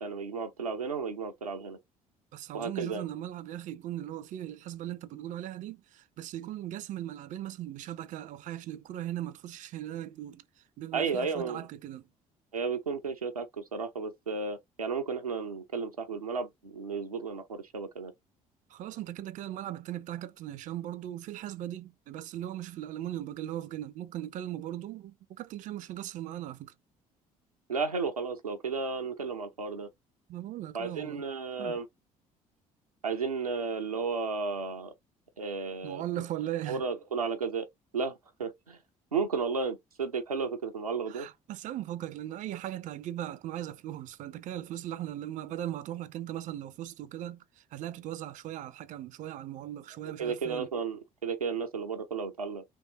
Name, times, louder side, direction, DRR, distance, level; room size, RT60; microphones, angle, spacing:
voice 1, 0.0-1.8 2.5-3.1 10.9-11.7 12.5-18.1 27.7-29.9 30.7-31.9 33.0-34.9 35.4-36.2 36.7-37.7 37.9-38.1 38.4-38.8 39.1-41.3 50.2-52.6, right 5 dB, 85° right, 0.6 m, -33 dB
voice 2, 2.3-12.0 18.7-26.7 30.3-31.2 31.6-31.8 35.8-36.8 41.1-50.7, right 12 dB, 45° right, 0.5 m, -38 dB
3.5 x 3.1 x 2.9 m
figure-of-eight pair, 55°, 18 cm